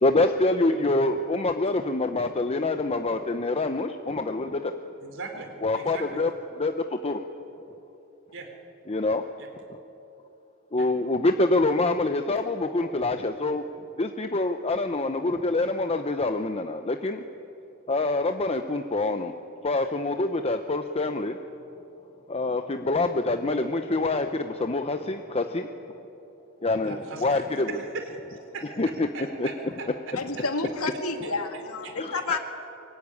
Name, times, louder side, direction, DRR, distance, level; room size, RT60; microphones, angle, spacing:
voice 1, 0.0-4.7 5.6-6.3 6.6-7.2 8.9-9.2 10.7-13.7 14.0-17.2 17.9-19.3 19.6-21.4 22.3-25.7 26.6-27.8 28.8-29.1 29.4-29.5 32.0-32.4, left 2 dB, 30° left, 7 dB, 0.8 m, -26 dB
voice 2, 5.0-5.5 5.8-6.2 8.3-8.5 9.4-9.5 10.8-10.9 26.9-29.9 30.4-30.5 31.5-32.2, right 4 dB, 65° right, 4 dB, 3.9 m, -39 dB
voice 3, 30.1-32.4, left 3 dB, 80° left, 6 dB, 2.2 m, -30 dB
23.5 x 23.5 x 9.8 m, 3.0 s
head